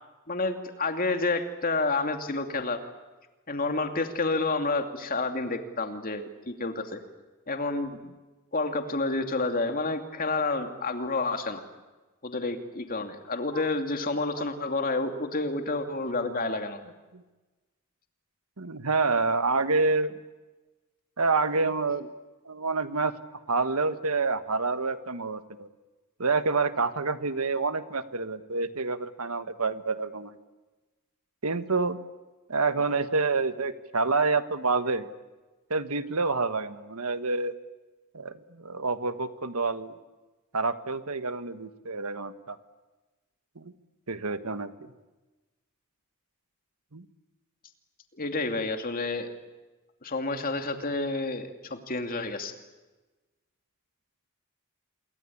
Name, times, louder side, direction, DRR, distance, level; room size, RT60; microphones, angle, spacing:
voice 1, 0.3-2.8 3.5-7.0 7.5-8.0 8.5-11.6 12.2-16.8 48.1-49.3 50.0-52.5, left 3 dB, 40° left, 6 dB, 2.6 m, -29 dB
voice 2, 18.6-20.1 21.2-22.1 22.4-23.1 23.5-25.7 26.2-30.4 31.4-32.0 32.5-35.1 35.7-37.5 38.1-39.9 40.5-42.6 43.5-43.7 44.1-44.7 46.9-47.0, right 3 dB, 80° right, 11 dB, 1.6 m, -28 dB
27.5 x 23.0 x 8.7 m, 1.2 s
head